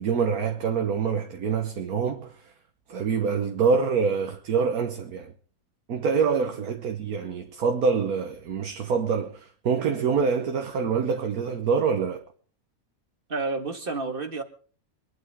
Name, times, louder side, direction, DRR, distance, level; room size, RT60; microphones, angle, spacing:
voice 1, 0.0-2.5 2.9-5.3 5.9-12.2, right 5 dB, 85° right, 1.6 m, -25 dB
voice 2, 13.3-14.4, right 3 dB, 40° right, 1.9 m, -30 dB
24.5 x 12.0 x 3.6 m
omnidirectional pair, 1.5 m